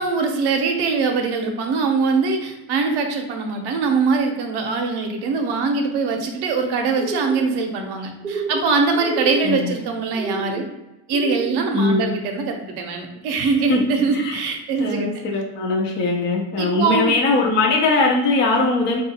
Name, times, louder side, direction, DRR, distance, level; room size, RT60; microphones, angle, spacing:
voice 1, 0.0-10.7 11.1-15.1 16.6-17.1, right 4 dB, 55° right, 3 dB, 0.7 m, -22 dB
sound 1, 7.0-7.5 8.2-8.7 9.0-9.5 10.1-10.6 11.1-11.6, right 3 dB, 15° right, 0.6 m, -29 dB
voice 2, 9.4-9.7 11.7-12.1 13.7-14.4 14.8-19.0, left 3 dB, 25° left, -1 dB, 0.4 m, -20 dB
4.4 x 2.4 x 2.7 m, 0.98 s
cardioid pair, 140°, 48 cm